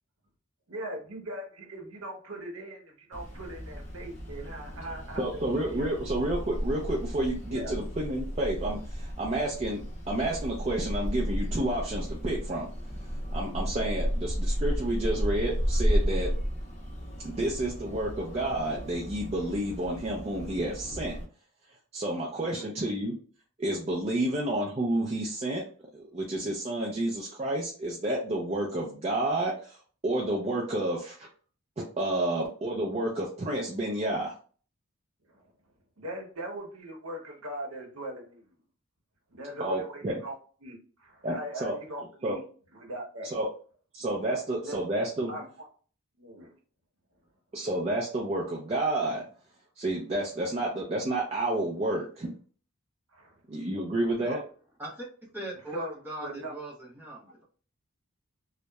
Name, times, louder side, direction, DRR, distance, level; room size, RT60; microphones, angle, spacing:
voice 1, 0.7-5.9 7.5-7.7 17.3-17.4 22.3-22.7 35.3-35.4 36.0-38.4 39.3-40.3 40.6-42.4 42.7-43.3 44.3-44.4 44.6-44.8 45.3-45.5 46.2-46.5 53.1-53.3 54.2-54.4 55.7-55.9 56.2-56.5, right 1 dB, 75° right, 0.8 m, -40 dB
sound 1, 3.1-21.2, equal, 30° left, 0.6 m, -33 dB
voice 2, 5.2-9.8 10.1-12.7 13.3-16.3 17.2-21.2 21.9-23.2 23.6-25.6 25.9-29.8 30.0-31.3 32.0-34.3 39.6-40.2 41.2-41.7 42.2-42.4 43.2-43.5 43.9-45.3 47.5-49.2 49.8-52.3 53.5-54.4, right 1 dB, 30° right, 0.4 m, -30 dB
voice 3, 55.3-57.4, right 1 dB, 10° right, 0.7 m, -40 dB
2.8 x 2.1 x 2.2 m
head